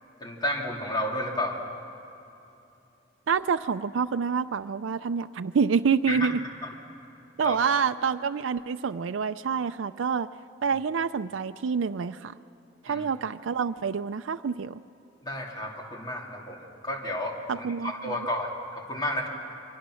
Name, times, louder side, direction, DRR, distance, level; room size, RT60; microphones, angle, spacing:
voice 1, 0.2-1.6 6.1-6.3 6.6-6.7 7.4-7.6 12.9-13.0 15.2-19.3, left 1 dB, 20° left, 0 dB, 2.7 m, -32 dB
voice 2, 3.3-6.4 7.4-10.3 10.6-12.3 12.8-14.8 17.5-18.2, right 6 dB, 90° right, 10 dB, 0.4 m, -27 dB
28.0 x 24.0 x 6.3 m, 2.9 s
head